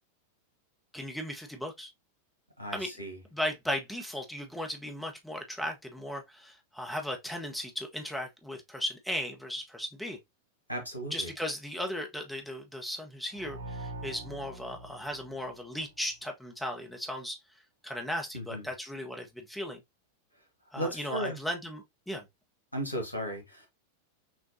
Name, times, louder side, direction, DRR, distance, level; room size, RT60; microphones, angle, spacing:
voice 1, 0.9-1.9 2.7-2.9 3.3-10.2 11.1-17.4 17.8-19.8 20.7-22.3, left 1 dB, 5° left, 1.0 m, -36 dB
voice 2, 2.6-3.2 10.7-11.3 18.3-18.7 20.8-21.4 22.7-23.7, right 1 dB, 85° left, 1.5 m, -35 dB
sound 1, 13.3-16.2, right 2 dB, 65° right, 0.8 m, -44 dB
6.1 x 2.5 x 2.6 m
figure-of-eight pair, 90°, 0 cm